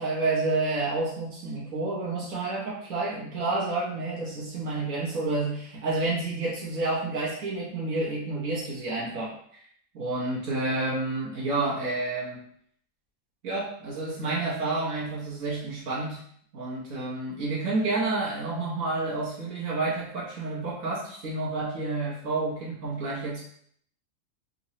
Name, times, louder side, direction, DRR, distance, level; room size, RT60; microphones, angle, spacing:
voice 1, 0.0-9.3 9.9-12.4 13.4-16.2 16.5-23.4, right 3 dB, 75° right, -6 dB, 1.4 m, -29 dB
3.7 x 3.0 x 2.7 m, 0.62 s
omnidirectional pair, 1.4 m